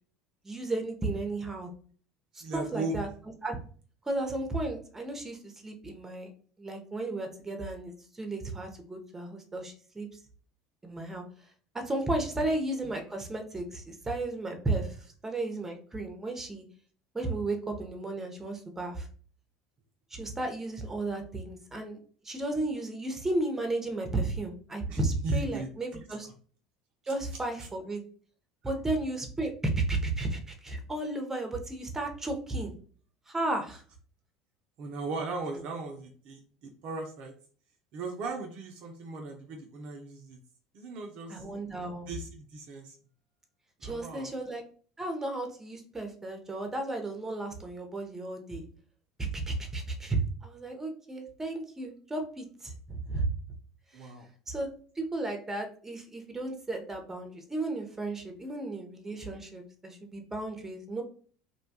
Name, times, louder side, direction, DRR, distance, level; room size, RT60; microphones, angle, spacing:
voice 1, 0.4-1.7 2.3-3.1 3.4-3.6 4.0-6.3 6.6-10.1 10.8-11.2 11.7-16.6 17.1-19.1 20.1-22.0 22.2-26.3 27.0-28.0 28.6-32.7 33.3-33.8 41.3-42.1 43.8-44.6 45.0-48.6 49.2-53.3 54.0-54.1 54.5-54.7 55.0-61.0, right 2 dB, 15° right, 4 dB, 0.7 m, -34 dB
voice 2, 2.4-3.0 24.9-25.7 28.6-28.7 34.8-37.4 37.9-40.4 40.7-41.4 42.1-43.0 43.8-44.3 53.9-54.3, right 3 dB, 55° right, 3 dB, 0.5 m, -38 dB
2.7 x 2.2 x 2.7 m, 0.44 s
hypercardioid pair, 75°, 2 cm